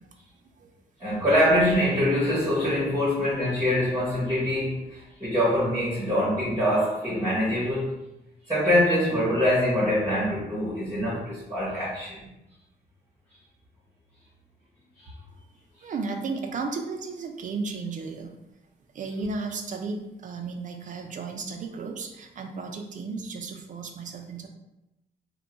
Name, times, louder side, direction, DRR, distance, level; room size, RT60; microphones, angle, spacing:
voice 1, 1.0-8.0 8.5-12.2 15.0-15.1, equal, 15° right, -10 dB, 0.9 m, -24 dB
voice 2, 15.8-18.3 18.9-24.5, right 4 dB, 45° right, 4 dB, 0.4 m, -34 dB
2.2 x 2.2 x 3.8 m, 0.92 s
cardioid pair, 130°, 18 cm